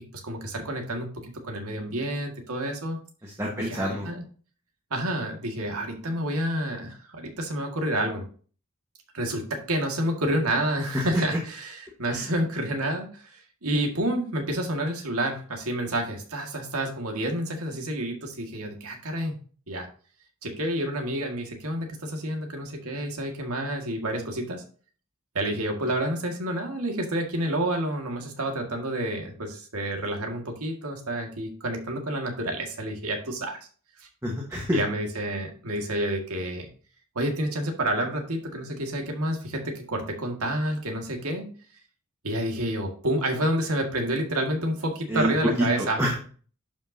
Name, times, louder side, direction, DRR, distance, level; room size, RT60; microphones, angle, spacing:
voice 1, 0.2-3.0 3.6-4.2 4.9-8.3 9.1-19.4 19.7-19.9 20.4-24.6 25.3-33.6 34.0-34.1 34.7-36.7 37.2-41.5 42.2-46.0, right 1 dB, 80° right, 2 dB, 1.9 m, -29 dB
voice 2, 3.2-4.1 10.9-11.0 12.1-12.3 34.2-34.8 45.1-46.2, equal, 15° right, -3 dB, 1.3 m, -27 dB
11.0 x 5.5 x 2.7 m, 0.42 s
head